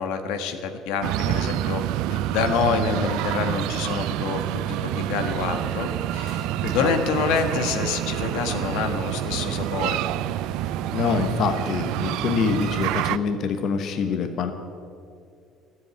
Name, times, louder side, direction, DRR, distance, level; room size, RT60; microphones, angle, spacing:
voice 1, 0.0-1.8 2.1-6.5 6.7-10.0, left 5 dB, 85° left, 7 dB, 1.3 m, -27 dB
sound 1, 1.0-13.2, right 13 dB, 75° right, 0.4 m, -27 dB
sound 2, 4.9-13.0, right 4 dB, 35° right, 1.5 m, -43 dB
voice 2, 10.9-14.5, left 5 dB, 50° left, 7 dB, 1.0 m, -25 dB
14.0 x 7.8 x 8.8 m, 2.4 s
cardioid pair, 155°, 0 cm